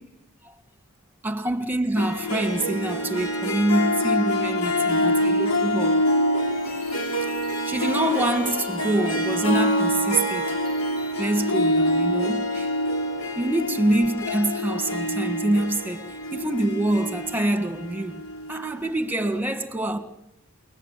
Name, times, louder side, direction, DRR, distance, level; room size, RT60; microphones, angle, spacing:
voice 1, 1.2-6.0 7.6-10.5 11.2-12.7 13.3-18.2 18.5-20.0, right 1 dB, 10° right, 1.6 m, -25 dB
Harp, 2.0-18.7, equal, 85° left, 4.0 m, -26 dB
sound 1, 6.4-11.4, left 1 dB, 45° left, 5.2 m, -42 dB
28.5 x 22.0 x 7.4 m
head